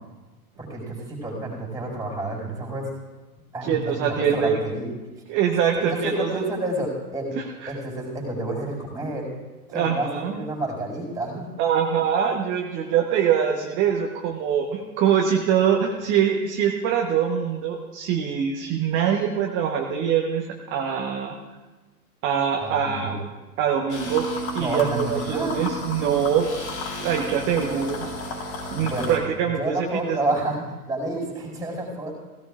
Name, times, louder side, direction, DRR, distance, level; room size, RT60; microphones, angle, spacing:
voice 1, 0.6-2.9 3.5-4.9 5.7-7.3 7.7-9.3 9.7-11.5 22.6-23.1 24.6-25.8 28.7-29.2 29.4-32.2, right 1 dB, 10° right, -2 dB, 4.5 m, -29 dB
voice 2, 3.6-4.6 5.3-6.3 7.6-7.7 9.7-10.4 11.6-21.3 22.2-23.2 23.6-24.3 24.5-26.5 27.0-28.1 28.7-30.2, right 8 dB, 25° right, 1 dB, 1.0 m, -23 dB
sound 1, 23.9-29.2, left 1 dB, 45° left, 4.0 m, -33 dB
17.0 x 16.5 x 2.5 m, 1.2 s
figure-of-eight pair, 105°, 45 cm